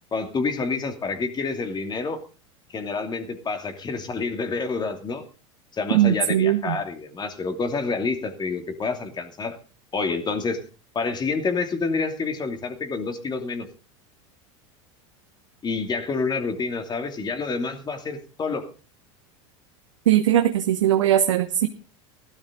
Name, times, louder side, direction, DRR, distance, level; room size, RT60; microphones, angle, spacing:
voice 1, 0.1-2.2 2.7-5.2 5.7-9.6 9.9-10.6 10.9-13.7 15.6-18.7, left 4 dB, 25° left, 6 dB, 2.8 m, -28 dB
voice 2, 5.9-6.8 20.1-21.7, right 11 dB, 85° right, 7 dB, 1.1 m, -20 dB
16.0 x 12.5 x 3.8 m, 0.33 s
hypercardioid pair, 95°, 16 cm